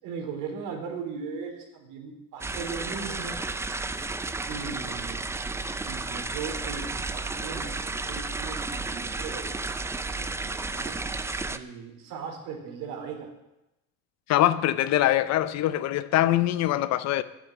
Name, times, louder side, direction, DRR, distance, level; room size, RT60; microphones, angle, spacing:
voice 1, 0.0-3.4 4.5-5.3 5.8-11.0 11.5-13.3, right 5 dB, 75° right, 3.7 m, -38 dB
sound 1, 2.4-11.6, right 3 dB, 10° right, 0.5 m, -32 dB
voice 2, 14.3-17.2, left 13 dB, 55° left, 0.7 m, -23 dB
12.0 x 10.5 x 7.3 m
cardioid pair, 145°, 33 cm